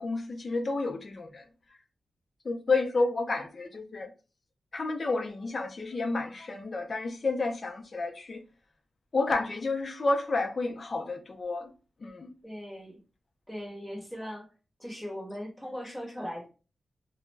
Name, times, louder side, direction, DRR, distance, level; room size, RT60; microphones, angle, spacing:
voice 1, 0.0-1.4 2.4-4.1 4.7-8.4 9.1-11.7 12.0-12.3, left 3 dB, 40° left, 0.5 m, -30 dB
voice 2, 12.4-13.0 13.5-14.5 14.8-16.5, equal, 5° left, 0.8 m, -39 dB
2.2 x 2.0 x 3.2 m
wide cardioid pair, 165°, 0 cm